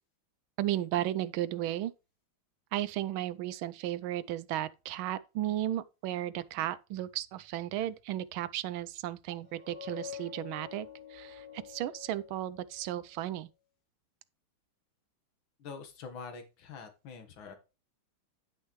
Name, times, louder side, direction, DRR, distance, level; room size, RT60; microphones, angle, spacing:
voice 1, 0.6-1.9 2.7-13.5, right 13 dB, 80° right, 1.4 m, -34 dB
sound 1, 9.4-13.0, left 9 dB, 20° right, 3.0 m, -47 dB
voice 2, 15.6-17.5, left 5 dB, 70° left, 2.2 m, -45 dB
10.0 x 6.4 x 3.1 m
omnidirectional pair, 2.3 m